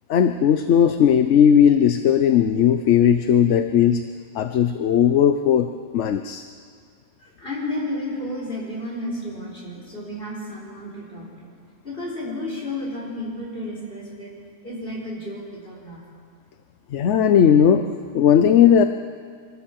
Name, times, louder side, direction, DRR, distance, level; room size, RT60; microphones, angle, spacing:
voice 1, 0.1-4.0 4.3-6.4 16.9-17.9 18.1-18.8, left 8 dB, 65° left, 9 dB, 1.0 m, -17 dB
voice 2, 7.2-11.5 11.8-14.3 14.6-16.0, left 1 dB, 40° left, -3 dB, 4.9 m, -32 dB
25.0 x 14.0 x 7.5 m, 2.1 s
omnidirectional pair, 1.4 m